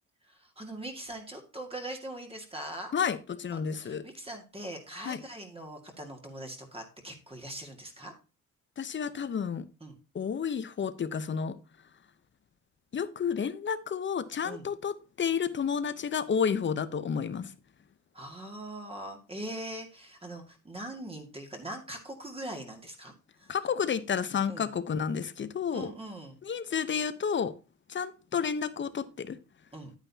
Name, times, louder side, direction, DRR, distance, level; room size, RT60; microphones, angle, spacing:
voice 1, 0.2-2.9 3.5-8.1 9.8-10.0 14.4-14.7 18.1-23.5 24.5-24.7 25.7-26.4 29.7-29.9, right 1 dB, 20° right, 2.1 m, -42 dB
voice 2, 2.9-4.0 5.0-5.2 8.8-9.7 10.1-11.6 12.9-17.5 23.5-25.9 26.4-27.5 27.9-29.4, left 7 dB, 40° left, 0.9 m, -31 dB
9.1 x 9.0 x 2.8 m
cardioid pair, 90°, 30 cm